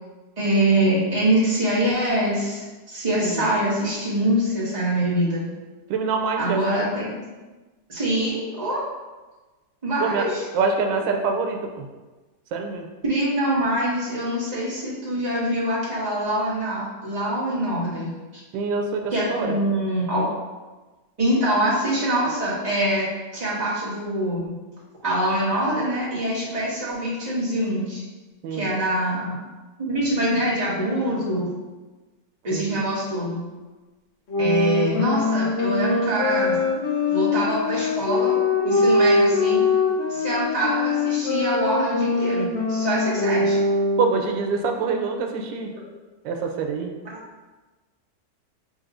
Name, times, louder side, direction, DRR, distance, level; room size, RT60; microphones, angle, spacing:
voice 1, 0.4-5.4 6.4-7.1 7.9-8.8 9.8-10.4 13.0-18.4 19.1-20.3 21.2-24.5 25.0-28.0 28.5-29.4 29.8-31.5 32.4-33.4 34.4-36.6 37.1-38.4 38.6-39.6 40.1-43.6 47.1-47.2, right 1 dB, 25° right, -9 dB, 1.4 m, -24 dB
voice 2, 5.9-6.9 10.0-10.3 10.5-11.9 12.5-12.9 18.5-19.6 28.4-28.7 32.5-32.9 44.0-45.7 46.2-46.9, right 4 dB, 90° right, 4 dB, 1.3 m, -25 dB
sound 1, 34.3-44.3, left 3 dB, 60° left, 0.7 m, -22 dB
6.7 x 2.9 x 2.5 m, 1.2 s
omnidirectional pair, 1.9 m